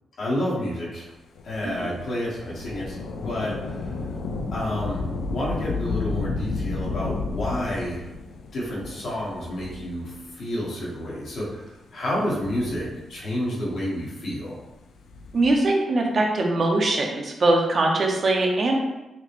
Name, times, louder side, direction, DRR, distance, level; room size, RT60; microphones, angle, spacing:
voice 1, 0.2-1.1 1.4-3.9 4.5-8.1 8.5-14.6, left 1 dB, 60° left, -5 dB, 1.3 m, -30 dB
Thunder / Rain, 1.4-10.3 11.1-11.2 12.1-13.4 14.9-15.7, left 3 dB, 80° left, 0.4 m, -32 dB
voice 2, 15.3-18.8, right 2 dB, 40° right, 1 dB, 0.5 m, -21 dB
5.8 x 2.1 x 3.0 m, 1.0 s
wide cardioid pair, 145°, 0 cm